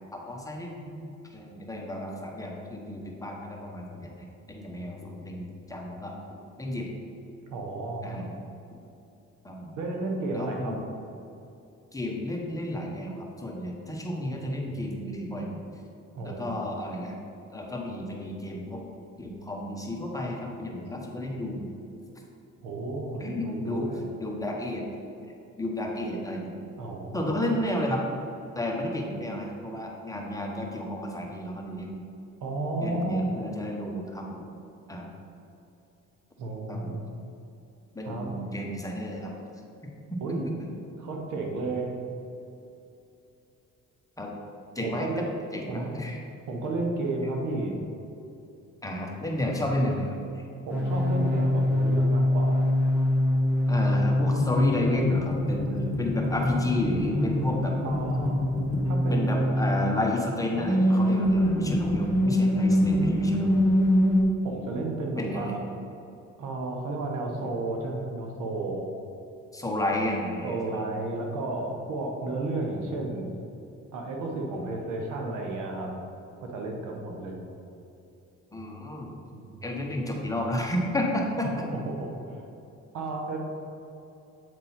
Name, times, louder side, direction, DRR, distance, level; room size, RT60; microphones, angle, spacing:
voice 1, 0.1-6.1 6.6-6.9 8.0-8.4 9.4-9.7 10.3-10.8 11.9-15.6 16.2-17.2 17.5-18.8 19.2-21.7 23.2-23.9 24.2-24.9 25.6-26.5 27.1-28.0 28.5-32.0 32.8-34.4 34.9-35.1 36.7-36.9 37.9-39.3 44.2-44.3 44.7-45.2 45.5-46.2 48.8-50.1 53.7-57.7 59.1-63.6 65.1-65.6 69.5-70.8 78.5-79.1 79.6-81.7, left 1 dB, 10° left, -1 dB, 1.0 m, -31 dB
voice 2, 7.5-8.2 9.8-10.8 16.1-16.6 22.6-24.1 26.8-27.3 32.4-33.4 36.4-37.0 38.1-38.4 40.2-40.5 41.0-42.0 44.8-45.3 45.7-45.9 46.5-47.8 50.7-52.6 57.8-58.5 58.8-59.4 64.4-65.6 66.4-68.9 70.4-73.3 73.9-76.0 76.4-77.4 79.3-79.7 81.7-82.4 82.9-83.4, right 2 dB, 85° right, 1 dB, 1.0 m, -32 dB
sound 1, 50.7-59.9 60.5-64.2, left 1 dB, 5° right, 1.4 m, -24 dB
8.1 x 3.7 x 4.3 m, 2.8 s
cardioid pair, 90°, 30 cm